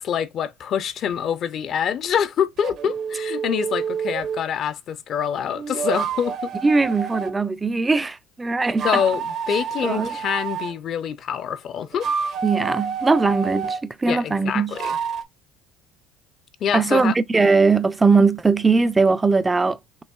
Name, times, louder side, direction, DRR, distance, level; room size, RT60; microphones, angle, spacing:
voice 1, 0.0-6.5 8.8-12.1 14.0-15.0 16.6-17.1, left 8 dB, 50° left, 0.4 m, -25 dB
sound 1, 2.6-4.5 5.5-7.3 8.7-10.7 11.8-13.8 14.7-15.2, right 6 dB, 55° right, 0.7 m, -28 dB
voice 2, 6.6-9.0 9.8-10.2 12.4-14.8 16.7-20.0, right 4 dB, 15° right, 0.3 m, -20 dB
5.3 x 2.9 x 2.2 m
supercardioid pair, 105°, 0 cm